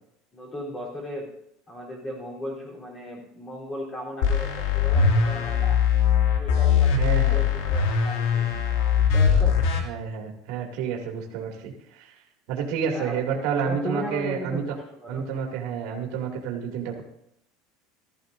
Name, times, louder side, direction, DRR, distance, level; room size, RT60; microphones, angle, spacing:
voice 1, 0.3-1.3 1.7-5.8 6.4-8.5 9.0-9.6 12.9-15.4, equal, 20° left, -3 dB, 3.7 m, -36 dB
sound 1, 4.2-9.8, left 7 dB, 85° left, 2.4 m, -21 dB
voice 2, 6.9-7.5 9.7-12.2 12.5-14.6 15.1-17.0, right 6 dB, 65° right, 1 dB, 2.4 m, -30 dB
15.5 x 13.5 x 2.7 m, 0.76 s
supercardioid pair, 150°, 0 cm